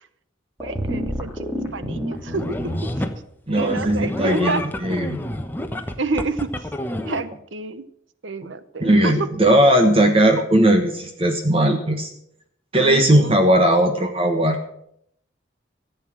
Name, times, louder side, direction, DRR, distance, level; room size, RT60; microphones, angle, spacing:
sound 1, 0.6-3.0, equal, 15° right, 2.3 m, -29 dB
voice 1, 0.6-1.5 1.7-3.0 3.5-4.6 6.0-6.7 7.0-7.8 8.2-9.3 12.8-13.3, right 3 dB, 80° right, 14 dB, 0.9 m, -29 dB
sound 2, 2.1-3.2 3.6-7.2, equal, 10° left, 1.0 m, -29 dB
voice 2, 3.5-5.2 8.8-12.1 12.7-14.6, right 1 dB, 30° right, 5 dB, 1.3 m, -18 dB
15.0 x 8.4 x 7.5 m, 0.73 s
head